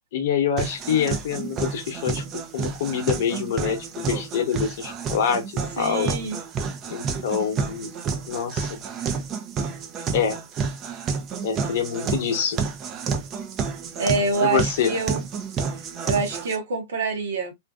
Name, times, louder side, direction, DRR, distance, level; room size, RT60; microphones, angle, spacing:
voice 1, 0.1-2.2 2.5-5.4 5.8-6.1 6.9-7.9 8.3-8.8 10.1-10.4 11.4-12.6 14.4-15.0, left 7 dB, 65° left, 0.9 m, -25 dB
sound 1, 0.6-16.6, right 5 dB, 30° right, 0.5 m, -30 dB
voice 2, 5.8-6.4 14.0-15.2 16.0-17.5, right 3 dB, 80° right, 0.9 m, -25 dB
2.5 x 2.5 x 2.3 m
hypercardioid pair, 120°, 0 cm